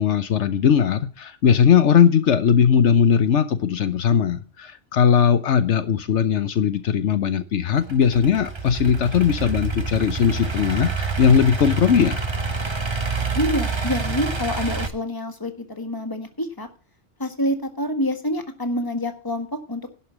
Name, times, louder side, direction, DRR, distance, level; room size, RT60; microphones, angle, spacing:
voice 1, 0.0-12.2, left 7 dB, 75° left, 1.1 m, -19 dB
Idling / Accelerating revving vroom, 7.8-14.9, right 4 dB, 25° right, 1.1 m, -27 dB
voice 2, 13.3-16.7 17.2-19.9, left 1 dB, 20° left, 1.6 m, -27 dB
11.5 x 5.5 x 8.5 m
omnidirectional pair, 1.2 m